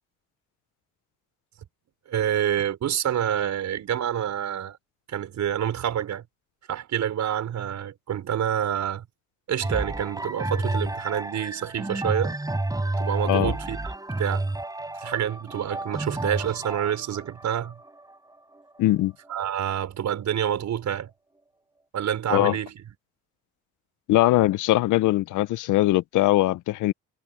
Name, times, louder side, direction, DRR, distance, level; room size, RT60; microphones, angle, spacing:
voice 1, 2.1-4.8 5.1-6.2 6.7-9.1 9.5-12.4 13.0-14.5 15.0-17.8 19.3-21.1 21.9-22.8, right 10 dB, 65° right, 5.7 m, -27 dB
sound 1, 9.6-19.4 20.1-20.2, right 2 dB, 10° right, 4.6 m, -31 dB
voice 2, 18.8-19.1 22.3-22.6 24.1-26.9, left 16 dB, 85° left, 0.8 m, -21 dB
cardioid pair, 90°, 30 cm